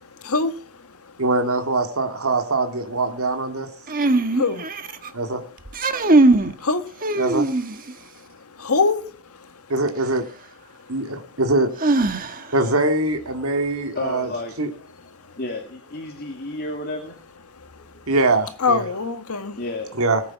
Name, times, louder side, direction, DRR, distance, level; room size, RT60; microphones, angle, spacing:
voice 1, 1.2-3.7 5.1-5.4 7.2-7.5 9.7-10.2 10.9-11.7 12.5-14.3 14.6-14.7 18.1-18.8 20.0-20.2, right 2 dB, 75° right, 2.1 m, -22 dB
sound 1, 3.9-5.1 5.6-6.5 7.0-7.9 9.9-10.0 11.8-12.6, right 2 dB, 40° right, 1.3 m, -20 dB
voice 2, 8.6-9.0 18.6-19.5, left 4 dB, 90° left, 1.8 m, -21 dB
voice 3, 13.4-14.5 15.4-17.2 19.6-20.0, left 2 dB, 45° left, 2.3 m, -32 dB
20.0 x 8.5 x 5.9 m
head